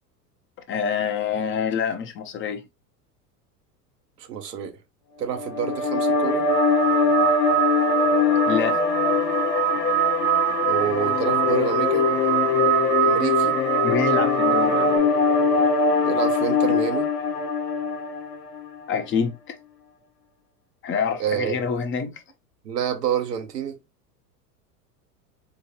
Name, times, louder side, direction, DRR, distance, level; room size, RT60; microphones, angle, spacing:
voice 1, 0.7-2.6 8.5-8.8 13.8-15.1 18.9-19.6 20.8-22.1, left 6 dB, 25° left, 0.6 m, -26 dB
voice 2, 4.2-4.8 5.2-6.5 10.7-12.1 13.0-13.6 16.0-17.1 21.2-21.6 22.6-23.8, right 8 dB, 80° right, 0.9 m, -28 dB
sound 1, 5.3-18.7, left 5 dB, 75° left, 1.1 m, -22 dB
sound 2, 6.5-15.0, right 18 dB, 55° right, 0.5 m, -25 dB
4.5 x 2.2 x 2.8 m
hypercardioid pair, 90°, 48 cm